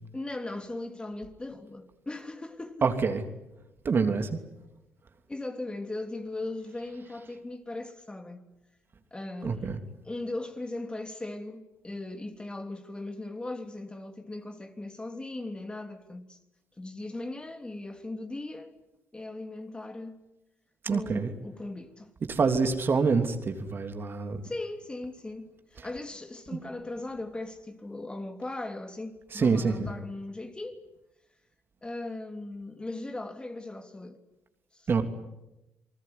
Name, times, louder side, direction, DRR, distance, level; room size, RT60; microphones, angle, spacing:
voice 1, 0.1-2.9 4.2-4.3 5.3-8.5 9.1-9.8 10.0-16.4 16.8-18.7 19.1-20.2 20.9-22.1 24.4-30.8 31.8-34.2 34.7-34.9, left 2 dB, 20° left, 3.1 m, -38 dB
voice 2, 2.8-3.2 3.8-4.4 9.4-9.8 20.8-21.3 22.3-24.4 29.3-29.9 34.9-35.0, right 5 dB, 45° right, 3.2 m, -26 dB
28.5 x 20.0 x 9.6 m
supercardioid pair, 60°, 5 cm